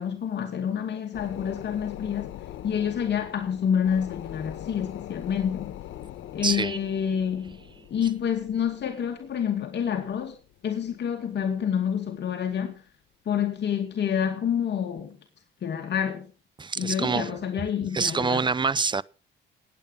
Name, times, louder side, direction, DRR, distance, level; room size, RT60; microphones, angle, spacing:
voice 1, 0.0-2.4 2.6-5.7 6.3-7.6 7.9-10.3 10.6-12.8 13.3-15.2 15.6-16.3 16.8-18.5, left 8 dB, 60° left, 2.4 m, -28 dB
sound 1, 1.1-11.1 11.5-11.6, left 12 dB, 85° left, 1.6 m, -42 dB
voice 2, 6.4-6.8 16.6-17.4 17.9-19.0, right 4 dB, 25° right, 0.6 m, -26 dB
19.0 x 8.8 x 5.6 m
cardioid pair, 90°, 20 cm